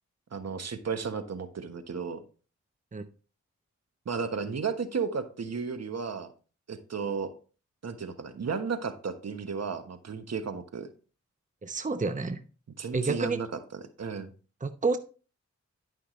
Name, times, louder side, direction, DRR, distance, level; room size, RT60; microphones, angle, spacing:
voice 1, 0.3-2.2 4.0-6.3 6.7-7.3 7.8-10.9 12.8-13.5 13.7-14.3, right 5 dB, 55° right, 9 dB, 1.3 m, -34 dB
voice 2, 11.6-12.4 12.9-13.4 14.6-15.0, right 3 dB, 25° right, 10 dB, 0.9 m, -29 dB
11.5 x 5.7 x 3.2 m, 0.36 s
cardioid pair, 40°, 30 cm